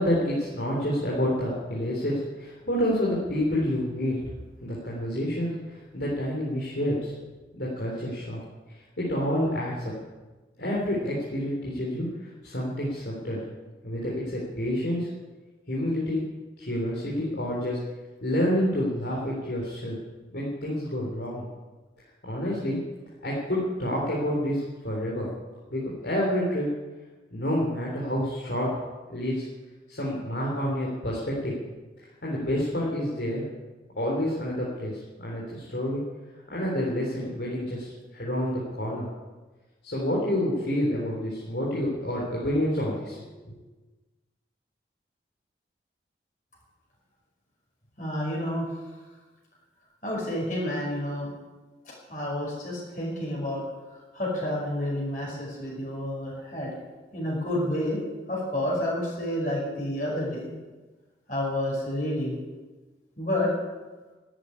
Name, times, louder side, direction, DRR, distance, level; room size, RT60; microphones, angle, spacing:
voice 1, 0.0-4.1 4.6-7.1 7.6-8.4 8.7-9.9 10.6-13.4 13.8-15.1 15.7-16.2 16.6-17.8 18.2-20.0 20.3-21.5 22.2-22.8 23.2-25.3 25.7-26.7 27.3-28.8 29.1-29.5 29.9-31.5 32.2-33.5 34.0-36.0 36.5-39.1 39.8-43.2, equal, 60° left, -5 dB, 3.7 m, -28 dB
voice 2, 48.0-48.8 50.0-51.3 51.8-53.6 54.1-56.7 57.1-58.0 58.3-60.5 61.3-62.4 63.2-63.5, left 1 dB, 45° left, -4 dB, 5.7 m, -29 dB
12.5 x 11.0 x 9.8 m, 1.2 s
head